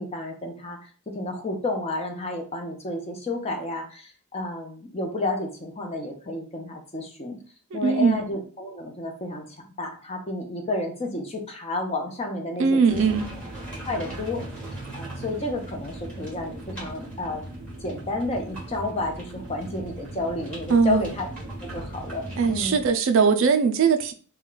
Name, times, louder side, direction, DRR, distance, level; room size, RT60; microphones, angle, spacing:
voice 1, 0.0-7.4 7.7-13.0 13.8-14.4 14.9-17.4 17.8-21.3 21.6-22.8, left 2 dB, 30° left, 2 dB, 0.5 m, -31 dB
voice 2, 7.7-8.2 12.6-13.3 20.7-21.0 22.4-24.1, right 5 dB, 60° right, 7 dB, 0.3 m, -20 dB
sound 1, 12.9-22.9, right 1 dB, 5° left, 0.9 m, -38 dB
2.2 x 2.2 x 3.7 m, 0.41 s
head